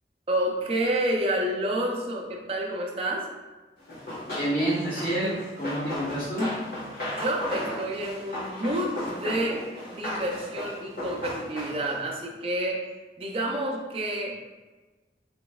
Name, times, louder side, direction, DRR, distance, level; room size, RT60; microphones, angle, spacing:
voice 1, 0.3-3.3 7.0-9.6 9.9-12.8 13.2-14.3, right 1 dB, 30° right, -1 dB, 0.5 m, -29 dB
Run, 3.9-12.1, left 1 dB, 55° left, 1.4 m, -35 dB
voice 2, 4.3-6.5, right 1 dB, 30° left, -12 dB, 0.9 m, -28 dB
4.2 x 3.0 x 2.3 m, 1.2 s
head